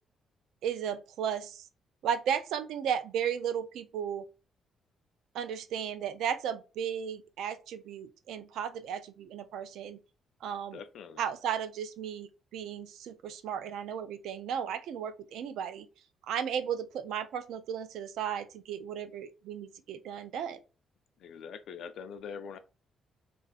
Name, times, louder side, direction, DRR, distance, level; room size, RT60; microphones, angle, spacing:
voice 1, 0.6-1.7 2.0-4.3 5.3-10.0 10.4-10.8 11.2-15.9 16.3-20.6, right 8 dB, 80° right, 0.3 m, -35 dB
voice 2, 10.7-11.3 21.2-22.6, left 6 dB, 70° left, 0.4 m, -43 dB
2.3 x 2.3 x 2.4 m
cardioid pair, 90°, 0 cm